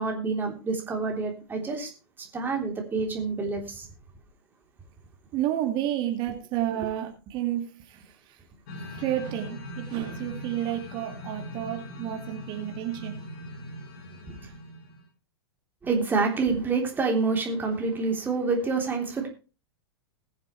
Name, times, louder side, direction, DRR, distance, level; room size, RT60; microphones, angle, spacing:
voice 1, 0.0-1.9 2.2-3.9 14.2-14.4 15.8-19.3, right 4 dB, 15° right, 3.4 m, -27 dB
voice 2, 5.3-8.1 8.8-13.2, right 12 dB, 35° right, 2.1 m, -31 dB
sound 1, 8.7-15.0, left 1 dB, 45° left, 3.6 m, -40 dB
21.0 x 7.4 x 3.2 m
figure-of-eight pair, 100°, 13 cm